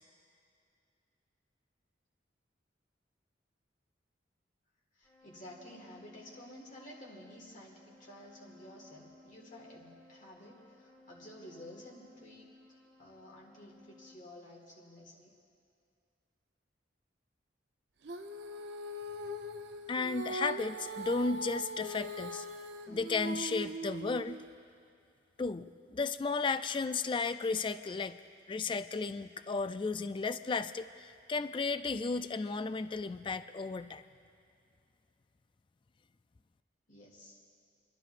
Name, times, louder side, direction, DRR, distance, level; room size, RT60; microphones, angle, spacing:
voice 1, 4.9-12.5 13.0-15.3 36.9-37.4, left 1 dB, 45° left, -2 dB, 1.7 m, -52 dB
sound 1, 5.0-14.2, left 2 dB, 10° left, 1.5 m, -59 dB
Female singing, 18.0-24.5, right 1 dB, 65° right, 0.7 m, -41 dB
voice 2, 19.9-22.5 22.9-24.4 25.4-28.2 28.5-34.0, left 4 dB, 25° left, 11 dB, 0.3 m, -34 dB
29.0 x 12.0 x 2.5 m, 2.5 s
head